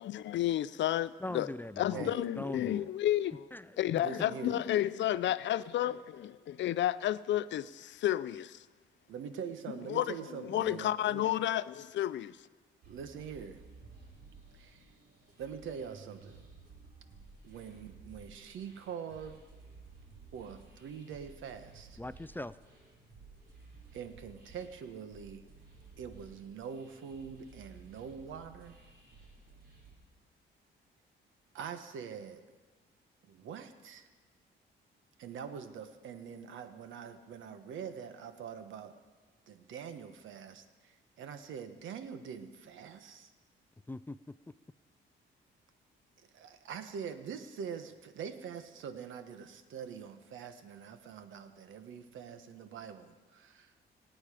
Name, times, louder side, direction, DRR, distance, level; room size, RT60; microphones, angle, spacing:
voice 1, 0.0-1.5 1.8-3.5 3.8-8.6 9.9-10.1 10.4-12.4, left 12 dB, 65° left, 0.5 m, -31 dB
voice 2, 1.2-2.9 3.5-3.8 22.0-22.6 43.9-44.4, left 1 dB, 10° left, 0.4 m, -41 dB
voice 3, 1.9-2.2 4.0-4.6 9.1-11.2 12.9-13.6 14.5-14.9 15.4-16.4 17.4-19.4 20.3-22.0 23.9-25.4 26.0-28.8 31.5-32.4 33.2-34.1 35.2-38.9 39.5-43.3 46.2-53.7, right 7 dB, 75° right, 1.2 m, -44 dB
sound 1, 12.8-30.0, right 4 dB, 55° right, 4.2 m, -55 dB
24.0 x 8.9 x 5.0 m
cardioid pair, 90°, 20 cm